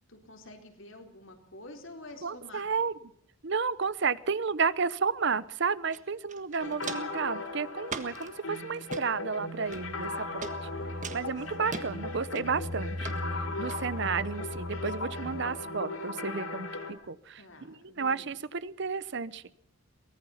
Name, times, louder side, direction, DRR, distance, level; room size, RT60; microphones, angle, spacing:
voice 1, 0.1-2.7 10.8-11.0 17.4-18.3, left 2 dB, 65° left, 4 dB, 4.1 m, -49 dB
voice 2, 2.2-2.9 3.4-10.4 11.1-13.1 13.6-16.7 17.1-19.4, right 5 dB, 55° right, 18 dB, 0.8 m, -32 dB
Walk footsteps, 5.9-6.0 6.3-7.2 7.9-8.3 8.7-9.0 9.7-10.1 10.4-10.5 11.0-11.9 12.4-12.7 13.0-13.2 13.7-13.8, right 4 dB, 35° right, 1.5 m, -39 dB
sound 1, 6.6-16.9, left 2 dB, 85° left, 3.2 m, -38 dB
sound 2, 9.7-15.6, left 1 dB, 75° right, 2.7 m, -40 dB
23.0 x 19.5 x 5.8 m, 0.69 s
head